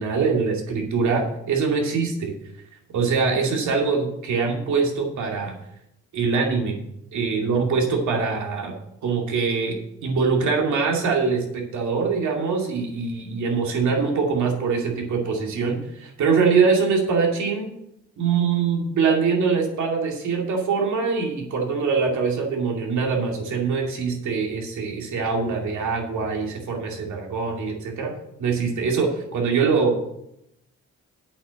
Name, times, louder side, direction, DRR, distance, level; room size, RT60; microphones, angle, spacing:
voice 1, 0.0-2.3 2.9-5.5 6.1-6.8 7.1-8.7 9.0-17.7 18.2-28.1 28.4-30.0, right 5 dB, 70° right, 0 dB, 2.5 m, -23 dB
8.5 x 5.8 x 7.5 m, 0.80 s
cardioid pair, 90°, 30 cm